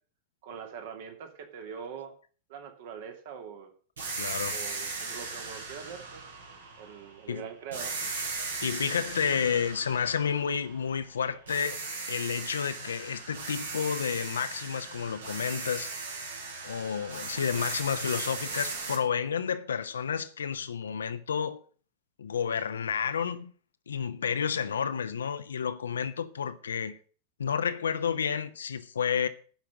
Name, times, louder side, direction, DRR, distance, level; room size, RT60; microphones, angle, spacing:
voice 1, 0.4-2.1 2.5-3.7 4.5-6.2 6.8-7.9, right 7 dB, 50° right, 2.5 m, -43 dB
sound 1, 4.0-7.2 7.7-11.1 11.5-19.0, right 4 dB, 70° right, 3.1 m, -38 dB
voice 2, 4.2-4.6 7.3-7.5 8.4-15.9 16.6-21.6 22.2-23.5 23.9-27.0 27.4-29.3, left 7 dB, 70° left, 0.9 m, -31 dB
10.5 x 5.9 x 8.5 m
figure-of-eight pair, 90°, 0 cm